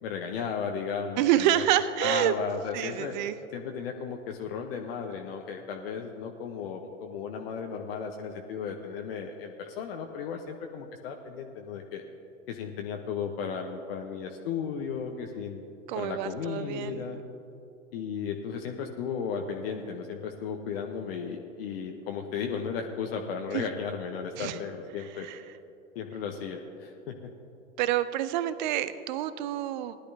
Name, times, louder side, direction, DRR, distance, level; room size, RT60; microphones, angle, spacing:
voice 1, 0.0-1.6 2.0-3.2 3.5-12.0 12.5-15.6 15.9-17.2 17.9-25.3 25.9-27.3, left 6 dB, 45° left, 3 dB, 0.9 m, -35 dB
voice 2, 1.2-2.3 2.7-3.4 15.9-17.1 23.5-23.6 24.4-24.6 25.2-25.4 27.8-30.0, right 12 dB, 35° right, 14 dB, 0.5 m, -27 dB
18.5 x 11.5 x 2.7 m, 2.7 s
figure-of-eight pair, 100°, 40 cm